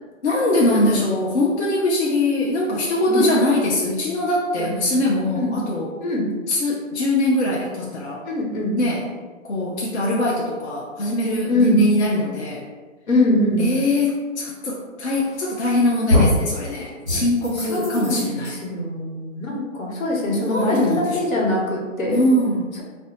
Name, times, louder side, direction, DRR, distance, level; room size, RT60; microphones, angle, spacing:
voice 1, 0.2-5.9 6.5-8.2 8.8-9.1 9.4-12.6 13.6-18.6 20.3-21.2 22.1-22.7, left 1 dB, 55° left, -4 dB, 0.6 m, -22 dB
voice 2, 3.1-3.4 5.4-5.5 6.0-6.3 8.2-8.8 11.5-11.8 13.1-13.7 17.7-22.2, left 1 dB, 85° left, -2 dB, 1.2 m, -22 dB
sound 1, 15.3-15.7 16.1-16.5 17.0-18.5, left 1 dB, 20° right, 0.5 m, -22 dB
2.6 x 2.1 x 3.8 m, 1.4 s
hypercardioid pair, 180°, 40 cm